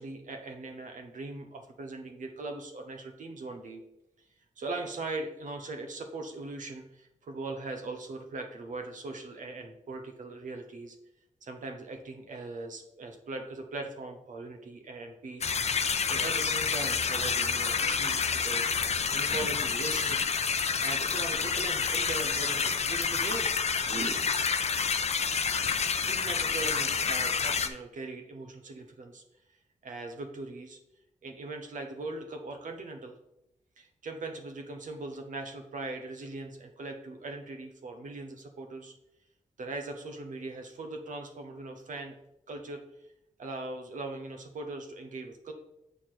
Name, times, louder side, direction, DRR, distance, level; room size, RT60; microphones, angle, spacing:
voice 1, 0.0-3.8 4.6-11.0 11.4-15.5 16.1-20.2 20.8-23.5 23.8-24.3 25.5-29.2 29.8-30.8 31.2-33.1 33.8-38.9 39.6-42.1 42.5-42.8 43.4-45.5, right 2 dB, 80° right, 5 dB, 0.9 m, -40 dB
sound 1, 15.4-27.7, left 6 dB, 55° left, 0.5 m, -28 dB
7.0 x 4.3 x 4.5 m, 0.84 s
cardioid pair, 55°, 13 cm